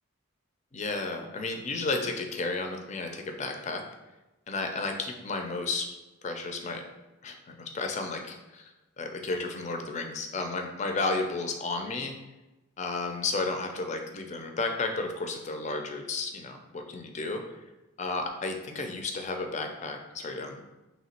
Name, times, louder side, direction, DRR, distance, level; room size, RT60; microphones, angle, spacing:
voice 1, 0.7-3.8 4.5-5.9 6.2-6.8 7.2-12.1 12.8-17.6 18.0-20.7, left 3 dB, 35° left, 4 dB, 0.4 m, -33 dB
3.1 x 2.9 x 4.2 m, 1.1 s
head